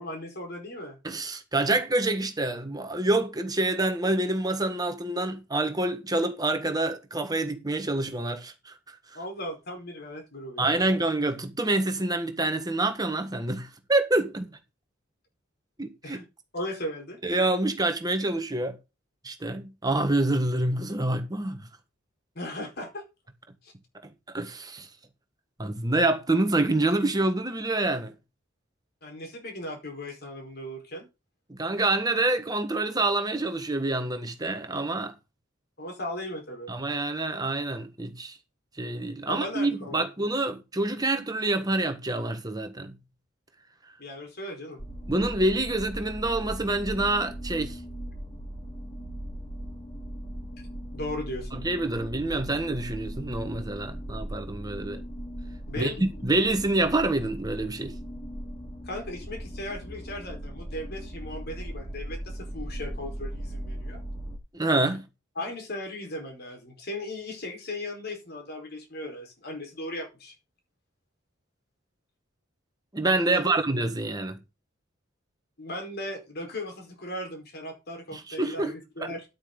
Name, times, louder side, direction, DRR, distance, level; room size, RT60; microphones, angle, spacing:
voice 1, 0.0-1.0 9.1-10.8 16.0-16.3 16.5-17.2 22.3-23.0 23.6-23.7 29.0-31.1 35.8-36.7 39.3-40.0 44.0-44.8 50.9-51.6 55.7-56.2 58.8-64.0 65.4-70.3 73.3-73.4 75.6-79.2, left 1 dB, 55° left, 4.7 m, -37 dB
voice 2, 1.0-9.2 10.6-14.6 15.8-16.2 17.2-18.8 19.2-21.7 24.3-24.9 25.6-28.1 31.5-35.1 36.7-38.4 38.8-43.0 45.1-47.8 51.5-55.0 55.8-58.0 64.5-65.1 72.9-74.4 78.1-78.7 79.0-79.1, right 2 dB, 20° right, 1.5 m, -27 dB
sound 1, 44.8-64.4, equal, 30° left, 2.9 m, -38 dB
11.0 x 8.8 x 3.9 m
head